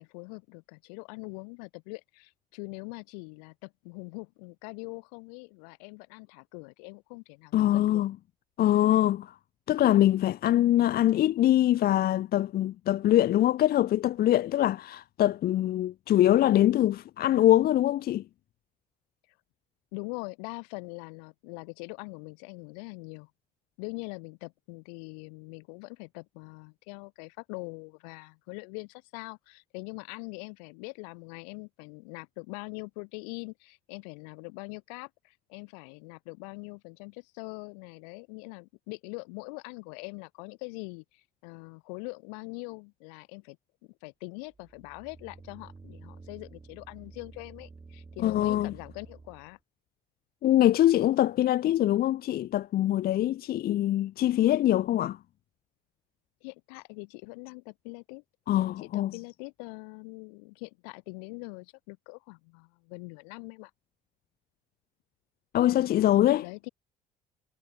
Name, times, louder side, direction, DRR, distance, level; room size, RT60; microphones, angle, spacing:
voice 1, 0.0-8.0 19.9-23.3 23.8-43.6 44.0-49.6 56.4-58.2 58.8-63.7 66.4-66.7, left 39 dB, 75° left, 3.8 m, -43 dB
voice 2, 7.5-8.1 8.6-9.3 9.7-18.2 48.2-48.7 50.4-55.2 58.5-59.1 65.5-66.4, left 13 dB, 50° left, 0.6 m, -23 dB
sound 1, 44.5-49.6, right 3 dB, 25° right, 5.3 m, -50 dB
hypercardioid pair, 60°, 20 cm